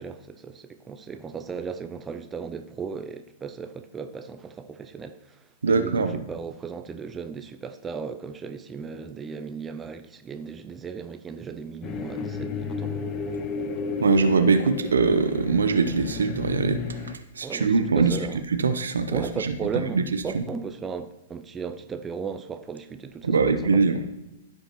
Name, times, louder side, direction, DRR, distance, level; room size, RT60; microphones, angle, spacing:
voice 1, 0.0-13.0 17.4-18.4 19.1-23.8, right 5 dB, 15° right, 0.5 m, -36 dB
voice 2, 5.6-6.2 14.0-16.8 17.4-18.2 18.5-20.4 23.2-24.0, right 4 dB, 75° right, 0.7 m, -22 dB
sound 1, 11.8-17.2, left 5 dB, 30° left, 0.6 m, -33 dB
14.0 x 5.2 x 3.1 m
figure-of-eight pair, 110°, 0 cm